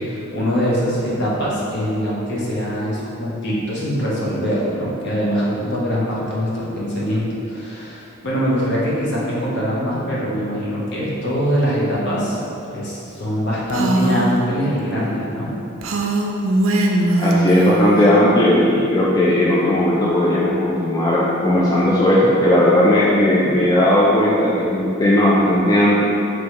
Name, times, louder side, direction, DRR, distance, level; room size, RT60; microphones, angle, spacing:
voice 1, 0.0-12.4 12.7-15.6, equal, 55° left, -6 dB, 0.9 m, -23 dB
Female speech woman speaking, 13.7-14.3 15.8-18.1, right 1 dB, 70° right, 0.4 m, -19 dB
voice 2, 17.2-26.0, left 1 dB, 20° left, -5 dB, 0.3 m, -16 dB
3.0 x 3.0 x 4.6 m, 2.8 s
head